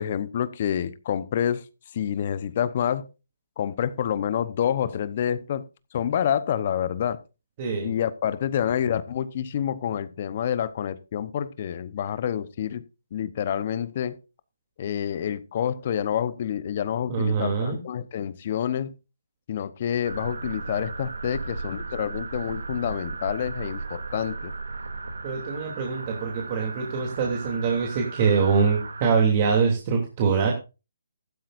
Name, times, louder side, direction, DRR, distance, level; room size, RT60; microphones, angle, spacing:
voice 1, 0.0-1.7 1.9-3.1 3.6-5.6 5.9-7.2 7.8-12.8 13.1-14.2 14.8-18.9 19.5-24.5, left 9 dB, 45° left, 0.9 m, -28 dB
voice 2, 7.6-7.9 17.1-17.8 25.2-30.5, right 5 dB, 35° right, 2.9 m, -24 dB
sound 1, 20.0-29.1, right 3 dB, 80° right, 2.6 m, -35 dB
15.0 x 12.0 x 2.6 m
hypercardioid pair, 150°, 0 cm